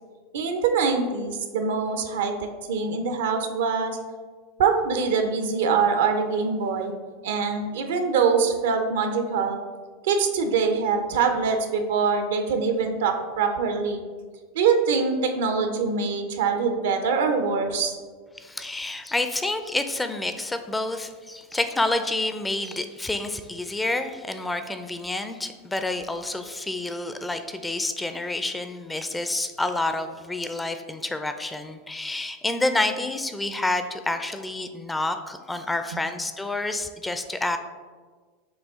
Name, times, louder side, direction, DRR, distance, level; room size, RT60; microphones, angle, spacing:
voice 1, 0.3-4.0 4.6-6.9 7.2-9.6 10.0-14.0 14.5-18.0, right 5 dB, 75° right, 6 dB, 0.5 m, -24 dB
voice 2, 18.4-37.6, left 2 dB, 10° left, 8 dB, 0.4 m, -28 dB
6.2 x 2.4 x 3.6 m, 1.5 s
hypercardioid pair, 100°, 0 cm